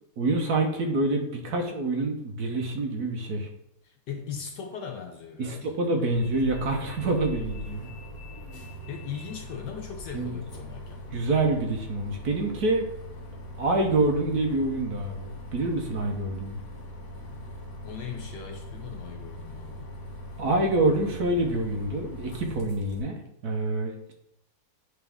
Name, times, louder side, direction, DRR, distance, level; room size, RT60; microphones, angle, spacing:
voice 1, 0.2-3.5 5.4-7.9 10.1-10.3 11.1-12.9 13.6-16.6 20.4-24.1, right 2 dB, 60° right, 2 dB, 1.1 m, -26 dB
voice 2, 3.8-5.8 8.9-11.0 17.8-19.9, left 7 dB, 65° left, 3 dB, 1.1 m, -39 dB
Bus, 6.1-23.0, left 1 dB, 45° left, 1.9 m, -41 dB
9.4 x 3.6 x 3.5 m, 0.78 s
omnidirectional pair, 2.4 m